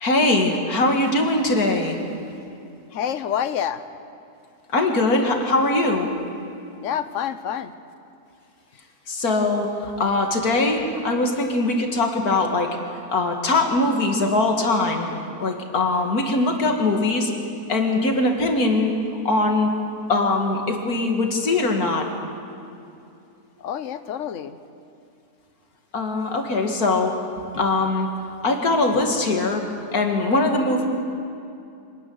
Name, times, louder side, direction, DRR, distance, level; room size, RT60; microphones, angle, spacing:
voice 1, 0.0-2.0 4.7-6.1 9.1-12.8 13.1-15.1 15.4-17.3 17.7-18.9 19.2-19.7 20.1-22.1 25.9-27.2 27.5-29.6 29.9-30.8, left 2 dB, 85° left, 3 dB, 2.5 m, -21 dB
voice 2, 2.9-3.8 6.8-7.7 23.6-24.6, left 9 dB, 60° left, 12 dB, 1.2 m, -27 dB
25.0 x 13.5 x 9.6 m, 2.6 s
omnidirectional pair, 1.5 m